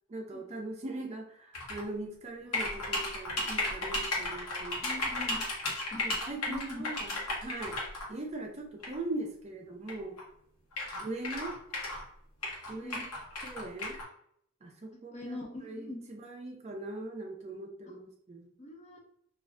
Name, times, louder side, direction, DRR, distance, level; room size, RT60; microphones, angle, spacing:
voice 1, 0.1-4.9 5.4-5.5 6.0-7.8 8.1-10.2 11.0-11.5 12.7-13.0 13.4-14.0 14.6-18.5, right 2 dB, 30° right, 2 dB, 0.4 m, -40 dB
sound 1, 1.5-1.8 2.5-8.1 8.8-9.0 9.9-10.0 10.2-10.3 10.7-12.0 12.4-14.0, left 2 dB, 85° left, 0.9 m, -34 dB
voice 2, 4.8-5.4 5.9-6.0 6.5-6.8 12.8-13.0 14.9-16.0 18.6-19.0, left 2 dB, 30° left, 2 dB, 0.4 m, -42 dB
3.0 x 2.4 x 2.5 m, 0.67 s
head